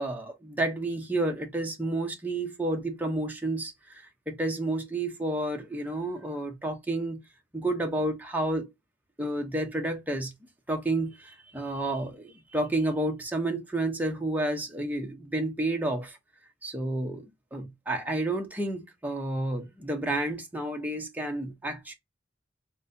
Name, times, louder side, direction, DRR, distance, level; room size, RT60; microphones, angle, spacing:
voice 1, 0.0-7.2 7.5-8.7 9.2-10.3 10.7-16.2 16.6-17.3 17.5-21.9, right 1 dB, 10° right, 0.7 m, -30 dB
4.0 x 2.1 x 2.6 m
head